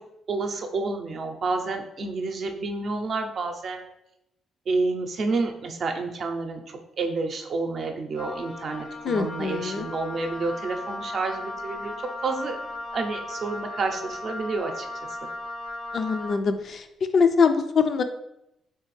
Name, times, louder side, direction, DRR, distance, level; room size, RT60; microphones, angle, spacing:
voice 1, 0.3-3.8 4.7-12.6 12.9-14.9, right 3 dB, 55° right, 4 dB, 0.5 m, -29 dB
Wind instrument woodwind instrument, 8.1-16.4, left 2 dB, 80° left, 0.8 m, -36 dB
voice 2, 9.0-9.9 15.9-16.9 17.1-18.0, left 5 dB, 55° left, 8 dB, 0.3 m, -23 dB
3.3 x 3.3 x 3.2 m, 0.83 s
cardioid pair, 90°, 0 cm